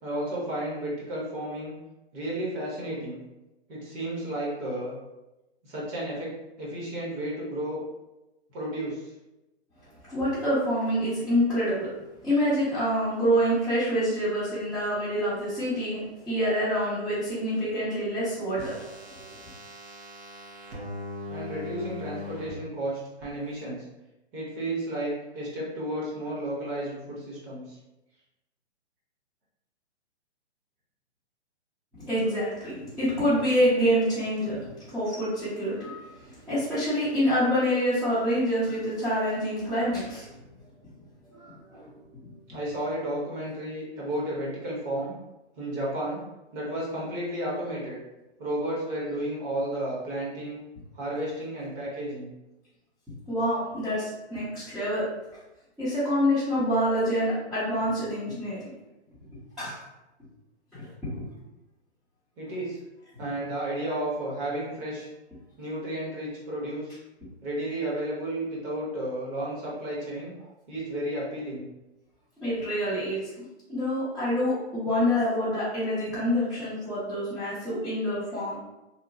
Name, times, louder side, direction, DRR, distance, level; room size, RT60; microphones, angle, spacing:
voice 1, 0.0-1.8 2.1-3.2 3.7-4.9 5.6-6.3 6.6-7.8 8.5-9.1 21.3-23.8 24.3-27.8 41.3-41.6 42.5-45.1 45.6-46.2 46.5-48.0 48.4-50.6 50.9-52.3 62.4-62.8 63.2-65.1 65.6-67.0 67.4-70.3 70.7-71.7, right 1 dB, 25° right, -6 dB, 0.8 m, -32 dB
voice 2, 10.1-11.9 12.2-19.3 32.1-40.3 41.2-41.3 41.7-41.9 53.3-55.1 55.8-58.7 59.6-59.8 60.7-61.2 72.4-78.6, equal, ahead, -16 dB, 0.5 m, -27 dB
sound 1, 18.6-22.5 23.2-23.3, left 2 dB, 60° right, 0.9 m, -40 dB
2.8 x 2.1 x 2.6 m, 0.98 s
hypercardioid pair, 135°, 34 cm